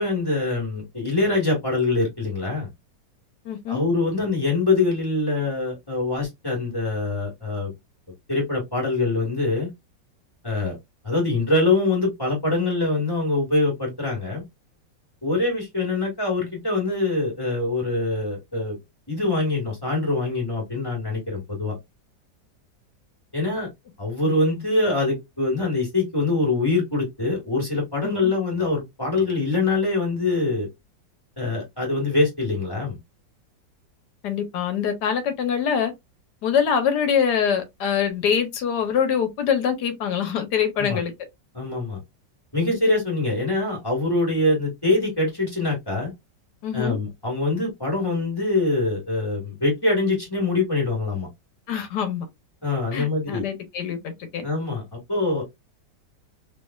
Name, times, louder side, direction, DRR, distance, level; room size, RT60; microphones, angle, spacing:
voice 1, 0.0-2.7 3.7-7.7 8.3-9.7 10.4-10.8 11.0-14.4 15.2-18.8 19.1-21.7 23.3-23.7 24.0-30.7 31.4-33.0 40.8-41.0 41.5-42.0 42.5-46.1 46.7-51.3 52.6-53.5 54.4-55.4, left 3 dB, 15° left, 1.3 m, -24 dB
voice 2, 3.4-3.8 28.0-28.1 34.2-35.9 36.4-41.1 46.6-47.0 51.7-52.3 52.9-54.4, left 7 dB, 70° left, 1.3 m, -24 dB
3.2 x 3.1 x 2.3 m
omnidirectional pair, 1.9 m